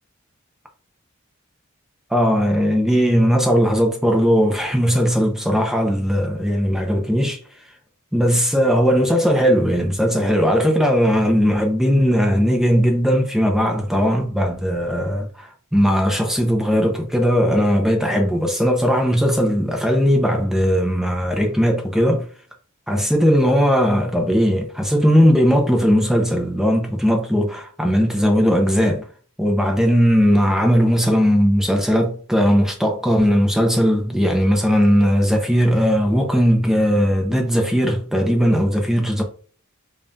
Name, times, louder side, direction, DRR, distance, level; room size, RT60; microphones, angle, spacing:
voice 1, 2.1-7.4 8.1-22.3 22.9-29.0 29.4-39.2, equal, ahead, 0.5 m, -18 dB
5.3 x 2.3 x 2.6 m
head